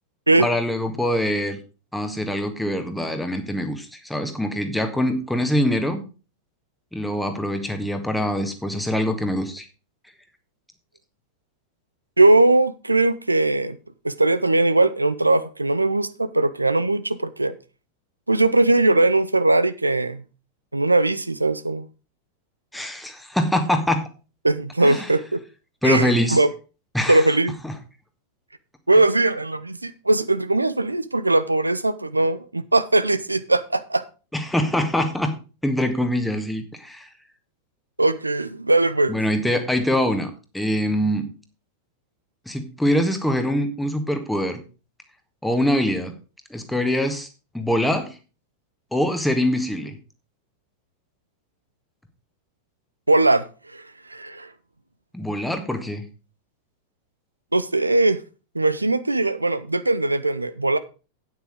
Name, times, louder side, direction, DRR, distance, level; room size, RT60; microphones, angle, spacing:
voice 1, 0.4-1.6 1.9-6.0 6.9-9.7 22.7-24.1 24.8-25.1 25.8-26.4 26.9-27.3 27.6-27.7 34.3-35.3 35.6-37.1 39.1-41.2 42.5-44.6 45.4-46.1 46.5-47.3 47.5-48.1 48.9-49.9 55.1-56.0, left 1 dB, 5° left, 1.6 m, -24 dB
voice 2, 12.2-13.8 14.0-17.5 18.3-20.2 20.7-21.9 24.4-25.4 25.8-26.5 27.1-27.5 28.9-34.0 38.0-39.2 53.1-53.4 53.7-53.8 54.1-54.5 57.5-58.2 58.5-60.8, right 2 dB, 85° right, 0.6 m, -20 dB
9.1 x 8.0 x 5.0 m
figure-of-eight pair, 90°, 0 cm